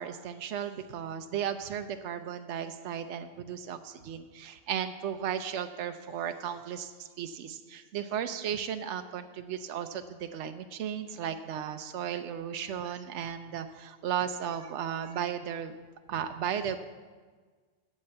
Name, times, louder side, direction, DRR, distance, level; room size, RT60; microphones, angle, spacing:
voice 1, 0.0-15.8 16.1-16.8, right 9 dB, 80° right, 8 dB, 0.9 m, -35 dB
8.8 x 7.5 x 7.9 m, 1.4 s
omnidirectional pair, 1.2 m